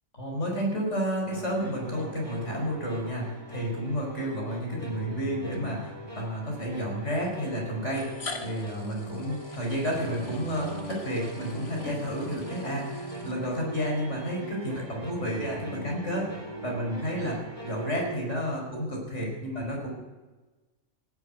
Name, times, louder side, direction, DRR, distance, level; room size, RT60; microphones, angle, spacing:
voice 1, 0.2-16.3 16.6-17.4 17.6-19.9, equal, 80° left, -1 dB, 5.0 m, -31 dB
sound 1, 1.3-18.2, right 1 dB, 30° right, 2.6 m, -41 dB
sound 2, 5.5-5.6 6.8-6.9 7.8-13.8, left 4 dB, 60° left, 1.6 m, -45 dB
17.5 x 8.0 x 9.2 m, 1.2 s
omnidirectional pair, 1.2 m